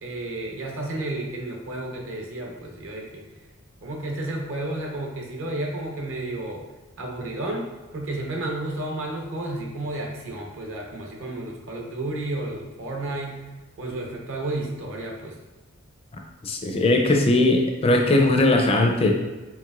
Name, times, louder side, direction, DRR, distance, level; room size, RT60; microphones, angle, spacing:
voice 1, 0.0-3.3 3.8-6.6 7.0-13.4 13.8-15.4, right 2 dB, 65° right, 0 dB, 0.8 m, -32 dB
voice 2, 16.4-19.1, left 2 dB, 30° left, 2 dB, 0.4 m, -19 dB
4.7 x 3.3 x 2.4 m, 1.2 s
head